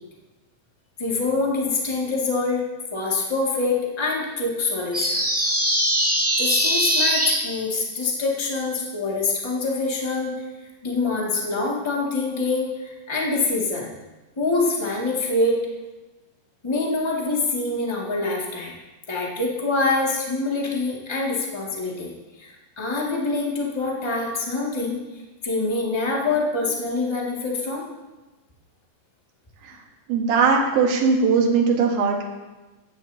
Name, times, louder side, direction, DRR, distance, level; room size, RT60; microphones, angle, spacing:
voice 1, 1.0-2.6 2.9-5.3 6.4-10.3 10.8-13.9 14.4-15.6 16.6-18.7 19.1-22.1 22.4-25.0 25.4-27.9, left 3 dB, 15° left, -3 dB, 1.1 m, -25 dB
sound 1, 4.9-7.4, equal, 10° right, 0.7 m, -21 dB
voice 2, 30.1-32.3, right 5 dB, 75° right, 0 dB, 3.3 m, -20 dB
15.0 x 12.5 x 2.8 m, 1.1 s
omnidirectional pair, 4.4 m